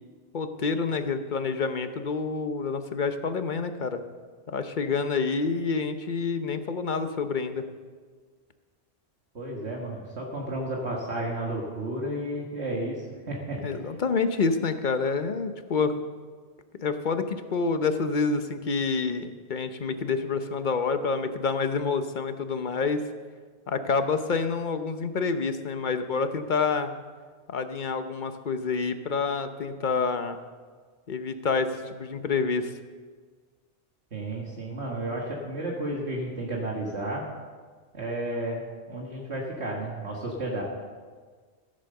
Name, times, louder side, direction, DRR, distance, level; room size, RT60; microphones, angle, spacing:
voice 1, 0.3-4.0 4.5-7.6 13.6-15.9 16.8-23.0 23.7-26.9 27.5-30.4 31.1-32.7, left 4 dB, 45° left, 9 dB, 0.9 m, -28 dB
voice 2, 9.3-13.8 34.1-37.2 37.9-38.6 38.9-40.6, right 1 dB, 65° right, -2 dB, 1.8 m, -32 dB
15.0 x 7.6 x 6.6 m, 1.5 s
omnidirectional pair, 1.2 m